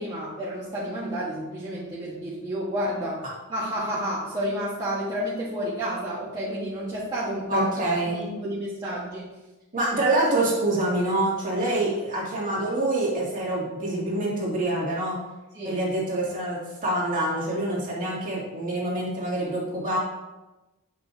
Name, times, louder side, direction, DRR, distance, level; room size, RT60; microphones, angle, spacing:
voice 1, 0.0-3.2 3.5-7.7 8.1-9.3 11.8-12.0 15.5-15.8, equal, 20° right, -10 dB, 1.3 m, -30 dB
voice 2, 7.5-8.2 9.7-15.2 15.6-20.0, right 1 dB, 40° right, -5 dB, 2.2 m, -26 dB
8.1 x 5.9 x 2.7 m, 1.1 s
head